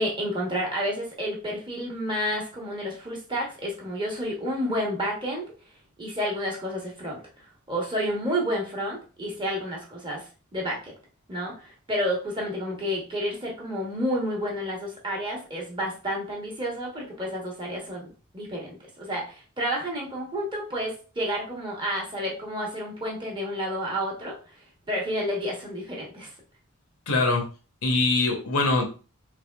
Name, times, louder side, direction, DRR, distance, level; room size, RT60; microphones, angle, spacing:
voice 1, 0.0-5.4 6.0-10.9 11.3-18.1 18.3-24.4 24.9-26.3, equal, 20° right, -2 dB, 0.9 m, -30 dB
voice 2, 27.1-27.5 27.8-28.8, left 3 dB, 85° left, 3 dB, 0.8 m, -23 dB
3.4 x 3.2 x 2.2 m, 0.36 s
head